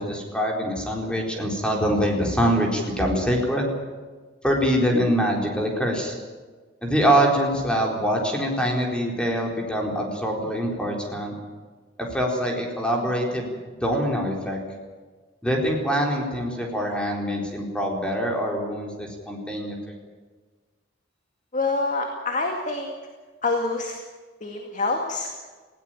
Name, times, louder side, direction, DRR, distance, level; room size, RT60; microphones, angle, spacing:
voice 1, 0.0-3.7 4.4-6.1 6.8-11.3 12.0-13.5 13.8-14.6 15.4-19.9, equal, 5° left, 0 dB, 4.2 m, -24 dB
voice 2, 21.5-22.9 23.4-24.0 24.4-25.3, left 3 dB, 40° left, 2 dB, 2.2 m, -26 dB
19.5 x 17.0 x 9.2 m, 1.4 s
head